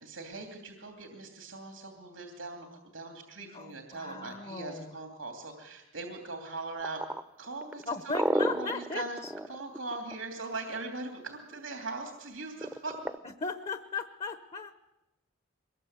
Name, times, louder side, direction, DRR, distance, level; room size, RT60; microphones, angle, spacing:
voice 1, 0.0-7.0 7.4-9.2 9.5-12.9, right 3 dB, 85° right, 3 dB, 2.9 m, -40 dB
voice 2, 3.5-5.0 7.9-9.3 13.4-14.7, left 4 dB, 30° left, 10 dB, 1.0 m, -37 dB
sound 1, 6.8-10.5 12.6-13.2, right 1 dB, 10° right, 0.8 m, -31 dB
23.5 x 21.0 x 8.1 m, 0.94 s
head